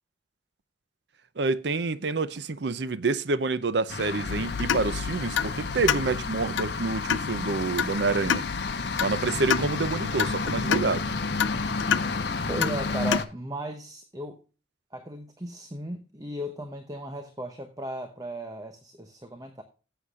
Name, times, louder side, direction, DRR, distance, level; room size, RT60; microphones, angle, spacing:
voice 1, 1.4-8.5 9.0-11.1, right 3 dB, 65° right, 0.6 m, -28 dB
sound 1, 3.9-13.2, left 4 dB, 65° left, 1.0 m, -32 dB
sound 2, 4.3-13.2, left 6 dB, 85° left, 0.5 m, -30 dB
voice 2, 12.5-14.4 14.9-19.6, right 1 dB, 20° right, 0.9 m, -36 dB
17.0 x 8.0 x 2.4 m
head